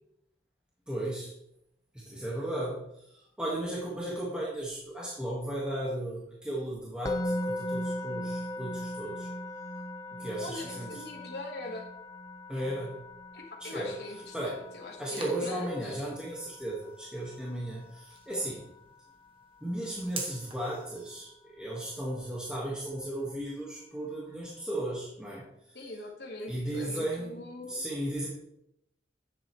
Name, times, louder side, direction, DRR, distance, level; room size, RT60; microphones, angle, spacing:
voice 1, 0.9-1.3 1.9-9.3 10.2-11.0 12.5-13.0 13.6-13.9 14.3-14.6 15.0-18.6 19.6-25.4 26.5-28.3, right 1 dB, 5° right, -6 dB, 1.6 m, -35 dB
Musical instrument, 7.0-18.2, left 1 dB, 20° left, 0.3 m, -38 dB
voice 2, 10.4-11.9 13.3-16.0 25.7-27.8, left 2 dB, 60° left, 0 dB, 1.4 m, -42 dB
sound 1, 14.0-21.2, right 4 dB, 30° right, 1.2 m, -47 dB
9.9 x 7.5 x 3.1 m, 0.77 s
head